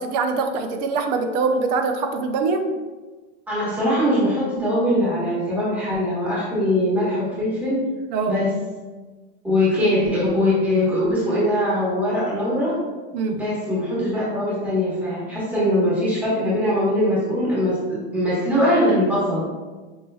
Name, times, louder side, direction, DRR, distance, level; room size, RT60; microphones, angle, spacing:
voice 1, 0.0-2.7 8.1-8.5 13.1-13.5, right 4 dB, 45° right, 6 dB, 0.4 m, -23 dB
voice 2, 3.5-7.8 8.3-8.6 9.4-12.8 13.4-19.4, left 1 dB, 5° right, -8 dB, 1.1 m, -21 dB
5.4 x 2.9 x 2.3 m, 1.3 s
supercardioid pair, 155°, 31 cm